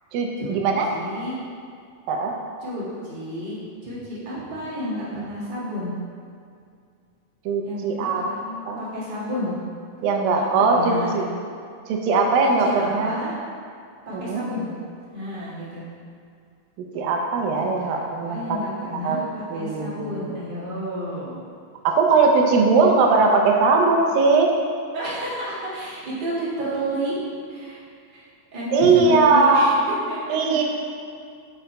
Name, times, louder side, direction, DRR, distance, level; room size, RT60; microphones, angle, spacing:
voice 1, 0.1-0.9 2.1-2.3 7.5-8.2 8.7-8.8 10.0-11.2 11.9-13.1 14.1-14.4 17.0-18.6 19.0-19.2 19.5-20.1 21.8-24.5 28.7-29.8 30.3-30.6, right 4 dB, 85° right, 1 dB, 2.5 m, -19 dB
voice 2, 0.9-1.4 2.6-3.6 3.8-5.9 7.6-9.6 10.7-11.3 12.4-13.3 14.0-14.7 15.1-15.9 17.9-21.4 24.9-27.2 27.5-27.8 28.1-28.2 28.5-30.4, equal, 25° right, -9 dB, 1.0 m, -31 dB
6.9 x 5.1 x 4.5 m, 2.3 s
omnidirectional pair, 4.0 m